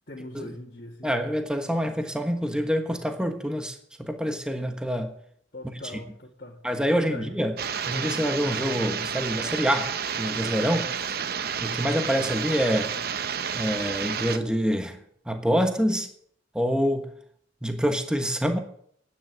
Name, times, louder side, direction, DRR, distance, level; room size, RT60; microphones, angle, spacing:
voice 1, 0.1-1.1 5.5-6.6 6.9-7.4, left 1 dB, 45° left, 2.2 m, -41 dB
voice 2, 1.0-5.1 6.6-7.5 7.9-11.1 11.6-13.0 13.5-16.1 16.5-17.1 17.6-18.6, equal, 5° right, 1.2 m, -26 dB
sound 1, 7.6-14.4, right 7 dB, 55° right, 0.8 m, -30 dB
11.5 x 9.6 x 8.9 m
head